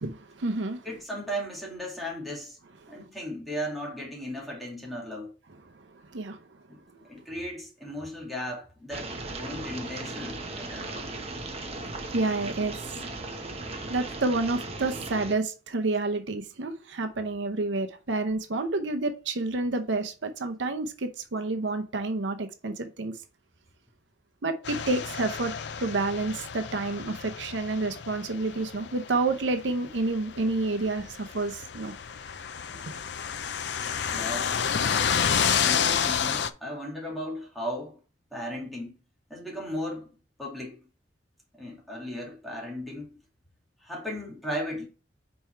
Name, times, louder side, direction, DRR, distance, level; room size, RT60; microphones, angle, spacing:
voice 1, 0.0-0.9 2.9-3.0 5.8-5.9 6.1-6.4 12.1-12.7 13.9-23.1 24.4-25.5 25.8-31.9 32.7-32.8, right 3 dB, 80° right, 0.7 m, -29 dB
voice 2, 0.8-2.6 2.9-5.3 6.7-6.8 7.1-11.1 34.1-34.5 35.4-38.0 38.3-39.0 39.3-40.1 40.4-40.9 41.5-43.2 43.8-44.9, equal, ahead, 2.2 m, -36 dB
sound 1, 8.9-15.3, right 2 dB, 35° right, 0.9 m, -37 dB
sound 2, 24.6-36.5, left 7 dB, 65° left, 0.5 m, -30 dB
5.4 x 4.4 x 4.5 m
head